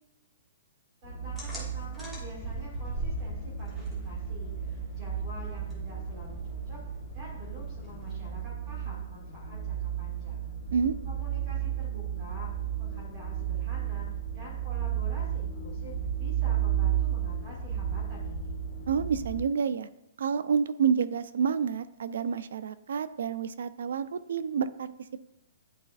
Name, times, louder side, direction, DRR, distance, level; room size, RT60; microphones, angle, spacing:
sound 1, 1.0-19.4, right 10 dB, 55° left, 1.6 m, -33 dB
voice 1, 1.0-6.8 7.1-10.5 11.1-12.5 12.8-14.0 14.3-18.6, left 1 dB, 25° right, -6 dB, 2.0 m, -47 dB
sound 2, 1.4-8.5, left 1 dB, ahead, 1.3 m, -41 dB
voice 2, 18.9-19.9 20.2-24.9, right 6 dB, 65° right, 14 dB, 0.4 m, -28 dB
10.5 x 4.2 x 2.4 m, 0.85 s
hypercardioid pair, 165°, 0 cm